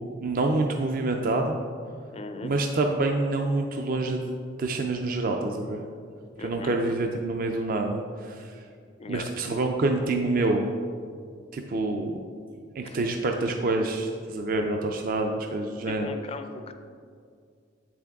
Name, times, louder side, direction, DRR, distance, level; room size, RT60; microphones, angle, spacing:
voice 1, 0.2-1.6 2.4-4.3 4.6-5.8 6.4-8.6 9.1-10.7 11.5-12.2 12.8-16.1, right 2 dB, 45° right, 3 dB, 0.4 m, -27 dB
voice 2, 2.1-2.5 6.4-6.7 9.0-9.3 12.8-13.0 15.9-16.8, left 3 dB, 30° left, 7 dB, 0.4 m, -38 dB
8.2 x 6.1 x 3.5 m, 2.2 s
head